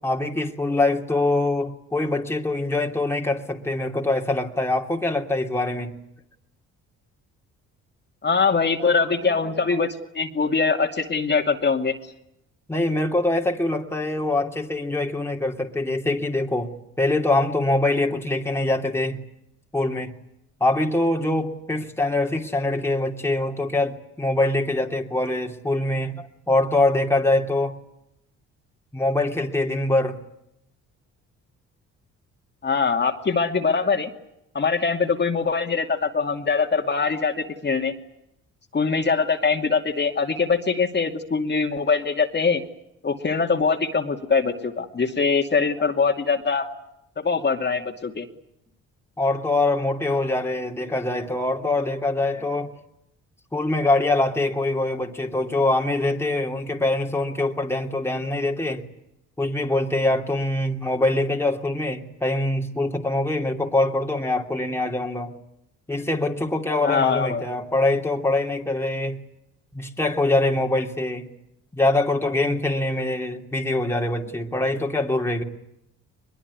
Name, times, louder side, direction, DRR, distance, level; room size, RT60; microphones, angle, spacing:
voice 1, 0.0-6.0 8.8-9.6 12.7-19.2 19.7-20.1 20.6-27.8 28.9-30.2 49.2-52.7 53.5-58.8 59.4-65.3 65.9-69.2 69.7-71.3 71.7-75.4, left 2 dB, 10° left, 2.9 m, -24 dB
voice 2, 8.2-9.9 10.1-11.9 32.6-34.1 34.5-37.9 38.7-42.6 43.0-46.7 47.2-48.2 66.8-67.4, left 5 dB, 35° left, 2.6 m, -22 dB
22.5 x 22.0 x 9.6 m
cardioid pair, 90°, 30 cm